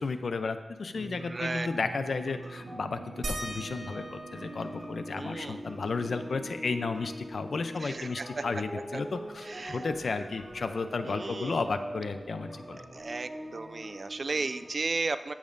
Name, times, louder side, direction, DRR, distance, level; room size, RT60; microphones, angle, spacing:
voice 1, 0.0-12.8, left 4 dB, 80° left, 9 dB, 0.5 m, -33 dB
sound 1, 0.9-14.7, right 1 dB, 30° right, 1.6 m, -43 dB
voice 2, 1.3-1.7 5.1-5.6 7.8-8.4 9.4-9.8 11.0-11.7 12.9-15.3, right 3 dB, 50° right, 12 dB, 0.4 m, -34 dB
sound 2, 3.2-8.4 8.7-8.8 9.1-10.9 12.2-12.3 13.0-13.1, right 1 dB, 70° right, 1.9 m, -44 dB
13.5 x 7.2 x 2.6 m, 1.1 s
wide cardioid pair, 90°, 0 cm